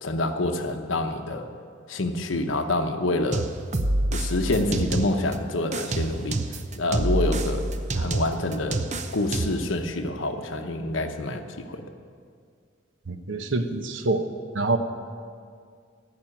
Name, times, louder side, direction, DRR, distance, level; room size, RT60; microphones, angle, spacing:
voice 1, 0.0-1.5 1.9-3.5 4.1-6.4 6.8-7.7 7.9-8.8 9.1-11.8, left 2 dB, 85° left, 6 dB, 1.0 m, -27 dB
sound 1, 3.3-5.3 5.7-9.7, right 2 dB, 35° right, 0.7 m, -27 dB
voice 2, 13.1-14.2 14.5-14.8, right 3 dB, 75° right, 8 dB, 0.9 m, -26 dB
14.5 x 6.2 x 8.8 m, 2.1 s
head